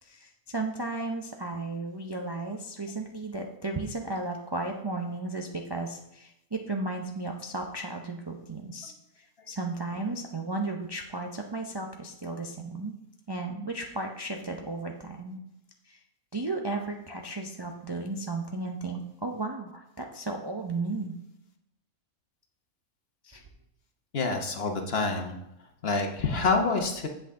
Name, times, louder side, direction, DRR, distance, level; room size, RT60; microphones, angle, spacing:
voice 1, 0.0-12.9 13.3-15.4 15.9-16.0 16.3-21.1 23.2-23.4, right 2 dB, 30° right, 1 dB, 0.4 m, -34 dB
voice 2, 24.1-25.4 25.8-27.1, left 3 dB, 45° left, 3 dB, 1.1 m, -27 dB
8.1 x 8.0 x 3.7 m, 0.83 s
omnidirectional pair, 1.5 m